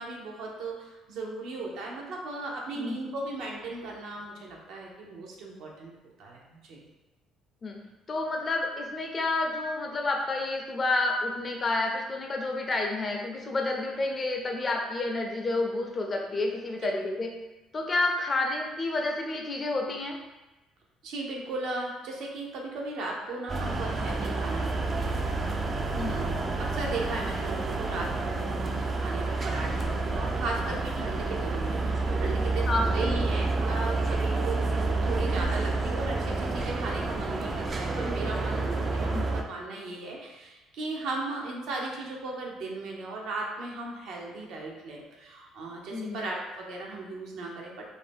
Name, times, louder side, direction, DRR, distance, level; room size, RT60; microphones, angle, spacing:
voice 1, 0.0-5.9 6.2-6.8 21.0-25.3 25.9-47.8, right 2 dB, 75° right, -2 dB, 0.6 m, -37 dB
voice 2, 8.1-17.3 17.7-20.2 25.9-26.3 32.6-32.9 39.0-39.2 45.9-46.2, left 2 dB, 35° left, 1 dB, 0.5 m, -29 dB
sound 1, 23.5-39.4, right 3 dB, 35° right, 0.3 m, -29 dB
2.6 x 2.0 x 3.4 m, 1.1 s
cardioid pair, 95°, 0 cm